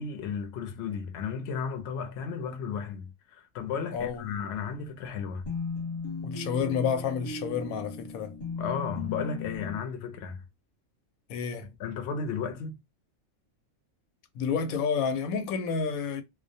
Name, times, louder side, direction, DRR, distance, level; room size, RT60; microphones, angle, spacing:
voice 1, 0.0-5.5 8.6-10.4 11.8-12.8, left 6 dB, 60° left, 0.7 m, -34 dB
voice 2, 3.9-4.5 6.2-8.3 11.3-11.7 14.4-16.2, left 6 dB, 90° left, 1.0 m, -30 dB
sound 1, 5.5-9.8, left 4 dB, 35° left, 0.9 m, -36 dB
2.3 x 2.1 x 2.5 m
omnidirectional pair, 1.4 m